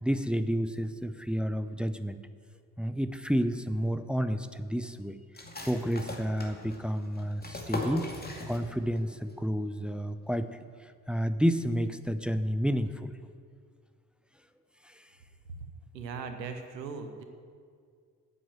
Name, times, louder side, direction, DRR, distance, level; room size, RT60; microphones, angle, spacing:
voice 1, 0.0-2.2 2.8-8.1 8.5-13.1 14.8-15.1, equal, ahead, 11 dB, 0.5 m, -30 dB
sound 1, 5.3-9.0 9.3-9.4 9.8-10.3, left 2 dB, 20° left, 2.3 m, -39 dB
voice 2, 15.9-17.2, right 5 dB, 85° right, 7 dB, 0.9 m, -38 dB
9.7 x 7.7 x 7.7 m, 2.1 s
figure-of-eight pair, 40°, 50 cm